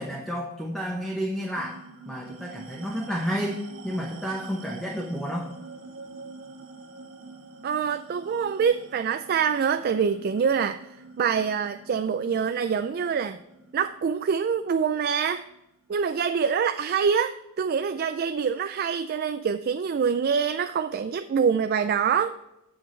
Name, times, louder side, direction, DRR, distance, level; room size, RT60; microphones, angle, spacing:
voice 1, 0.0-5.5, equal, ahead, 0 dB, 0.9 m, -31 dB
sound 1, 1.6-16.4, right 3 dB, 75° right, 1.3 m, -46 dB
voice 2, 7.6-10.8 11.2-13.4 13.7-15.4 15.9-22.4, right 6 dB, 50° right, 10 dB, 0.3 m, -25 dB
7.7 x 7.6 x 3.2 m, 0.92 s
head